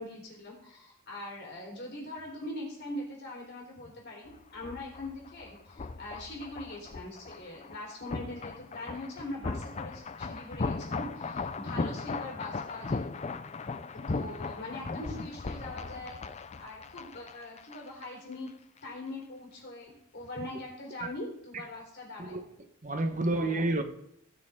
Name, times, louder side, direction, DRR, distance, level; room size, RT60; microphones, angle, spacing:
voice 1, 0.0-13.0 13.9-16.2 16.5-18.5 18.8-22.4 23.3-23.7, left 1 dB, 50° left, 4.1 m, -42 dB
sound 1, 4.3-18.1 18.3-18.5, left 3 dB, 30° left, 0.4 m, -37 dB
voice 2, 22.8-23.8, right 2 dB, 35° right, 1.1 m, -29 dB
18.0 x 6.8 x 3.7 m
head